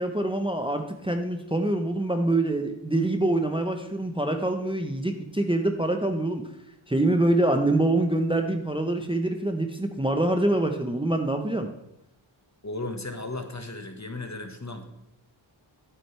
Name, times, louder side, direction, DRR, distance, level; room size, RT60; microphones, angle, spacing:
voice 1, 0.0-6.4 6.9-11.7, right 1 dB, 10° right, 5 dB, 0.9 m, -25 dB
voice 2, 12.6-14.8, left 2 dB, 35° left, 6 dB, 1.5 m, -35 dB
11.5 x 8.9 x 3.4 m, 0.87 s
wide cardioid pair, 55°, 47 cm